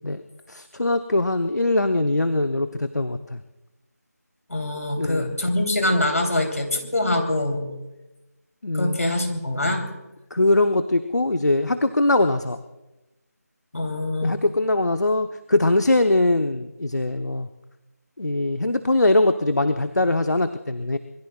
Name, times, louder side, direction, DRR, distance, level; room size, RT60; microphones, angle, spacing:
voice 1, 0.5-3.4 5.0-5.3 8.6-9.0 10.3-12.6 14.2-17.5 18.2-21.0, left 2 dB, 75° left, 8 dB, 1.0 m, -22 dB
voice 2, 4.5-7.7 8.7-9.8 13.7-14.4, left 1 dB, 60° left, 3 dB, 3.7 m, -24 dB
26.0 x 21.0 x 2.5 m, 1.0 s
figure-of-eight pair, 170°, 9 cm